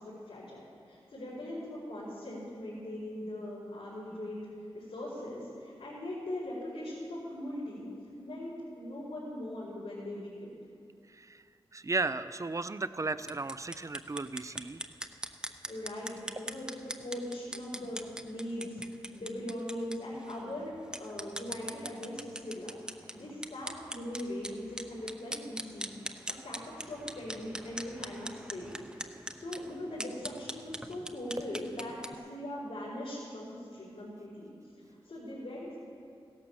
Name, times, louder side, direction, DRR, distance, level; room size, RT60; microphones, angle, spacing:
voice 1, 0.0-4.5 4.7-7.9 8.2-10.6 15.7-18.8 19.1-35.8, left 1 dB, 80° left, -9 dB, 4.7 m, -40 dB
voice 2, 11.1-11.4 11.7-14.8, right 3 dB, 35° right, 13 dB, 0.6 m, -35 dB
sound 1, 13.2-32.1, right 1 dB, 10° right, 0.9 m, -43 dB
16.0 x 11.5 x 7.2 m, 2.3 s
cardioid pair, 60°, 10 cm